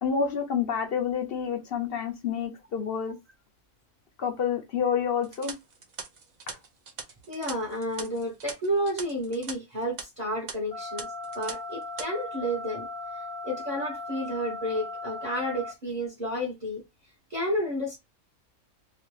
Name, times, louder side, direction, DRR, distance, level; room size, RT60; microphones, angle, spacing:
voice 1, 0.0-3.2 4.2-5.5 6.5-6.6, left 7 dB, 55° left, 0.7 m, -28 dB
sound 1, 5.2-9.5 9.8-10.0 10.5-10.6 11.0-11.5 11.8-12.1, right 5 dB, 70° right, 0.4 m, -41 dB
voice 2, 7.3-11.1 11.3-12.9 13.4-16.8 17.3-18.0, equal, 35° right, 0.9 m, -31 dB
sound 2, 10.7-15.7, left 2 dB, 80° left, 1.3 m, -37 dB
2.9 x 2.4 x 3.0 m
omnidirectional pair, 1.5 m